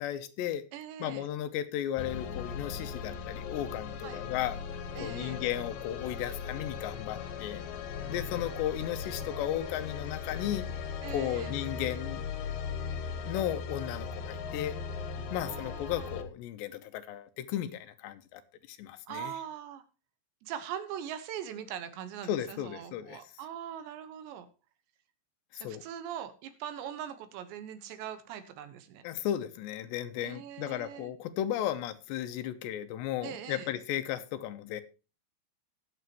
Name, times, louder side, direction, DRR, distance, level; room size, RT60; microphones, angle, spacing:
voice 1, 0.0-0.6 1.0-4.6 5.0-7.6 8.1-10.7 11.1-12.2 13.3-14.8 15.3-18.4 18.7-19.3 22.3-23.2 25.5-25.8 29.0-34.8, left 11 dB, 90° left, 11 dB, 3.1 m, -35 dB
voice 2, 0.7-1.3 4.0-4.2 4.9-5.4 11.0-11.5 15.4-16.1 19.1-19.8 20.4-24.5 25.6-29.0 30.2-31.1 33.2-33.7, right 10 dB, 85° right, 10 dB, 3.5 m, -41 dB
sound 1, 2.0-16.2, left 6 dB, 65° left, 2.6 m, -38 dB
20.0 x 7.0 x 3.0 m, 0.32 s
omnidirectional pair, 5.0 m